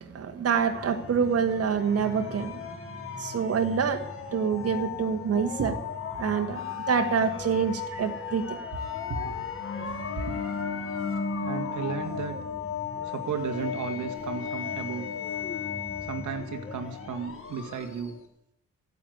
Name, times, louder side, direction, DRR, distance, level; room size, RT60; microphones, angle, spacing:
voice 1, 0.0-2.6 3.2-4.0 4.3-5.8 6.2-6.6 6.9-8.6 9.2-9.3, right 6 dB, 50° right, 6 dB, 1.7 m, -26 dB
sound 1, 0.7-18.2, left 6 dB, 45° left, 3.1 m, -35 dB
voice 2, 11.4-12.4 13.0-15.1 16.0-18.2, right 7 dB, 75° right, 5 dB, 1.9 m, -34 dB
13.5 x 9.6 x 9.3 m, 0.76 s
cardioid pair, 90°, 30 cm